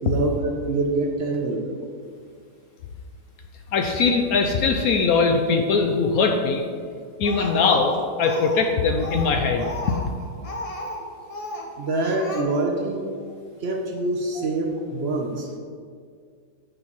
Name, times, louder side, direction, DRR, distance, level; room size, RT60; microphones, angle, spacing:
voice 1, 0.0-1.7 11.8-13.1 13.6-15.6, right 2 dB, 60° right, 2 dB, 0.7 m, -25 dB
voice 2, 3.7-6.6 7.2-9.7 14.4-14.5, left 4 dB, 70° left, 4 dB, 0.9 m, -21 dB
Speech, 7.2-8.7 9.0-11.0 11.3-11.7 12.0-12.4, left 1 dB, 45° left, 0.4 m, -34 dB
9.4 x 6.6 x 3.1 m, 2.1 s
omnidirectional pair, 1.9 m